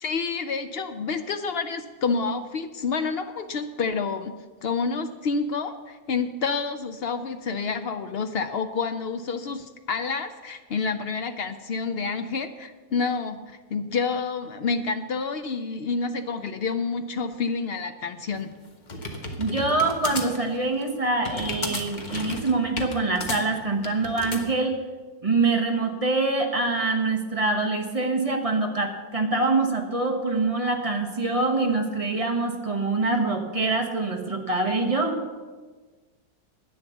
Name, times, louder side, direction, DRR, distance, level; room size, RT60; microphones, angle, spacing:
voice 1, 0.0-4.3 4.6-18.5, left 4 dB, 85° left, 8 dB, 0.5 m, -28 dB
sound 1, 18.3-24.4, left 2 dB, 30° left, 1.2 m, -33 dB
voice 2, 19.4-24.8 25.2-35.2, right 3 dB, 25° right, 3 dB, 1.0 m, -25 dB
11.0 x 9.5 x 7.0 m, 1.4 s
omnidirectional pair, 1.7 m